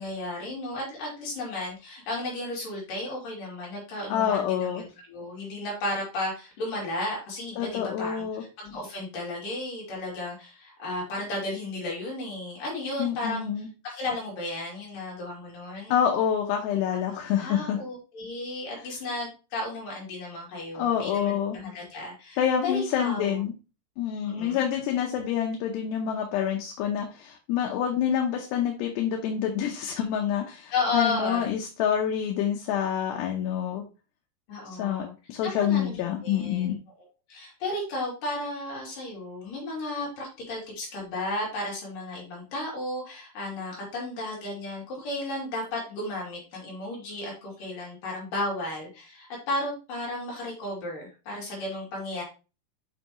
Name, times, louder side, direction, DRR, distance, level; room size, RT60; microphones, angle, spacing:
voice 1, 0.0-8.3 8.6-16.0 16.9-23.5 24.2-24.7 30.7-31.5 34.5-35.1 35.4-52.2, left 2 dB, 55° left, -3 dB, 4.0 m, -34 dB
voice 2, 4.1-4.8 7.6-8.4 13.0-13.7 15.9-17.8 20.7-21.6 22.4-23.5 24.0-33.8 34.8-36.8, left 9 dB, 85° left, 1 dB, 3.0 m, -27 dB
7.6 x 5.6 x 3.0 m, 0.31 s
omnidirectional pair, 4.8 m